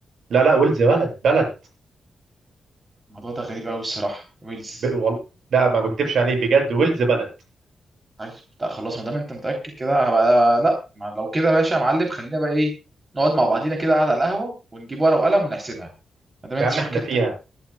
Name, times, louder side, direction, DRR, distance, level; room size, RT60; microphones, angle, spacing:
voice 1, 0.3-1.4 4.8-5.2 5.5-7.3 16.6-17.3, right 4 dB, 65° right, 2 dB, 7.3 m, -19 dB
voice 2, 3.1-4.8 8.2-8.3 8.6-12.7 13.1-15.9 16.4-17.2, right 1 dB, 20° right, 2 dB, 3.2 m, -22 dB
22.5 x 12.0 x 2.3 m, 0.30 s
wide cardioid pair, 165°, 0 cm